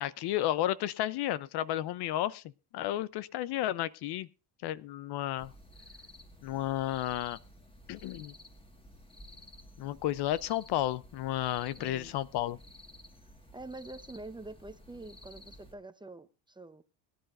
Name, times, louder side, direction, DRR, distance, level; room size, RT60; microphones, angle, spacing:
voice 1, 0.0-2.4 2.7-4.3 4.6-5.5 6.4-7.4 7.9-8.3 9.8-12.6, left 13 dB, 60° left, 18 dB, 0.7 m, -32 dB
sound 1, 5.4-15.7, left 1 dB, 10° left, 1.7 m, -53 dB
voice 2, 11.8-12.1 13.5-16.8, right 2 dB, 10° right, 10 dB, 0.8 m, -46 dB
21.5 x 10.5 x 2.5 m, 0.30 s
cardioid pair, 110°, 46 cm